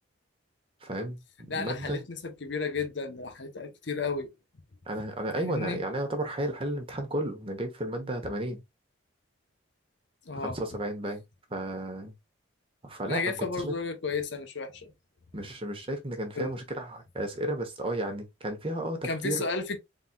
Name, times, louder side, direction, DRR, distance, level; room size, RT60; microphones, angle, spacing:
voice 1, 0.8-1.2 1.5-2.0 4.9-8.6 10.3-11.2 11.5-12.1 12.8-13.7 15.3-19.4, right 1 dB, 25° right, 1.0 m, -33 dB
voice 2, 1.5-4.3 5.3-5.8 10.3-10.6 13.1-14.9 16.4-16.6 19.0-19.8, left 4 dB, 60° left, 0.8 m, -33 dB
4.2 x 3.8 x 2.3 m
head